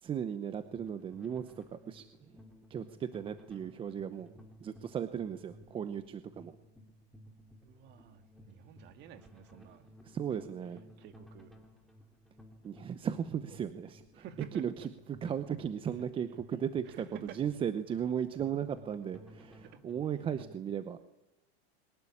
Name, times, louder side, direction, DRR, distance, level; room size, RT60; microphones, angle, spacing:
voice 1, 0.0-2.3 2.7-4.3 4.6-6.5 10.0-10.8 12.6-14.2 14.6-14.7 15.1-17.0 17.3-21.0, right 8 dB, 15° right, 11 dB, 0.8 m, -36 dB
sound 1, 0.6-20.6, left 1 dB, ahead, 2.8 m, -57 dB
voice 2, 7.6-10.0 11.0-11.5 14.1-14.6 16.8-17.4 19.6-19.8, right 10 dB, 35° right, 10 dB, 2.1 m, -50 dB
22.5 x 19.5 x 10.0 m, 0.94 s
supercardioid pair, 155°, 32 cm